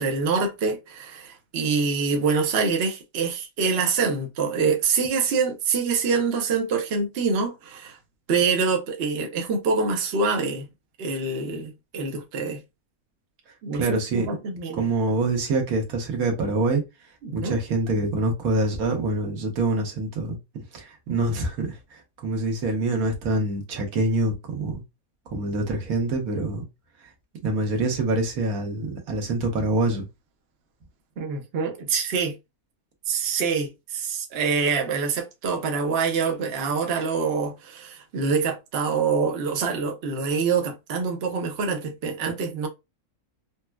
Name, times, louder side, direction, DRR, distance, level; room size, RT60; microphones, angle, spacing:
voice 1, 0.0-8.0 8.3-10.7 11.0-12.6 13.6-13.9 14.1-14.8 17.2-17.5 31.2-32.3 33.1-42.7, right 5 dB, 55° right, 0.8 m, -25 dB
voice 2, 13.7-14.3 14.7-16.8 17.3-20.4 20.7-24.8 25.3-26.6 27.0-27.1 27.4-30.1, right 2 dB, 75° right, 1.3 m, -25 dB
4.3 x 2.0 x 2.2 m
omnidirectional pair, 1.5 m